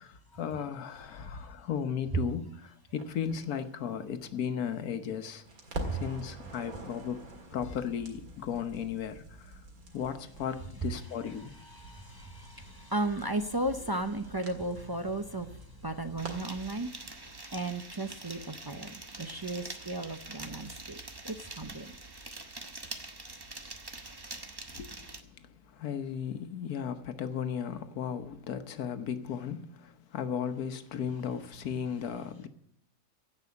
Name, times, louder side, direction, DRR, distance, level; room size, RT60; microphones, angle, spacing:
voice 1, 0.0-5.4 5.9-7.2 7.5-9.5 9.9-11.5 24.7-32.5, left 8 dB, 85° left, 1.4 m, -36 dB
voice 2, 1.1-1.5 5.9-6.1 11.4-17.2 17.5-21.0 21.2-22.0, right 2 dB, 35° right, 0.3 m, -35 dB
Crackle, 3.0-5.1 5.5-16.8, right 1 dB, 75° right, 2.5 m, -46 dB
sound 1, 16.2-25.2, right 2 dB, 20° right, 0.8 m, -45 dB
16.5 x 5.5 x 9.5 m
omnidirectional pair, 1.5 m